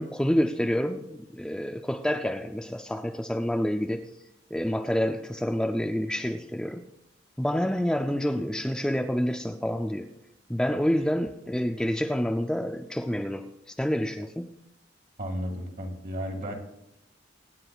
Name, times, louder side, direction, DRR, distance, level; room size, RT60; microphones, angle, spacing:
voice 1, 0.0-4.1 4.5-6.9 7.4-10.1 10.5-14.6, equal, 5° left, 4 dB, 0.4 m, -28 dB
voice 2, 15.2-16.5, equal, 45° right, 2 dB, 2.0 m, -33 dB
24.5 x 9.7 x 2.3 m, 0.88 s
head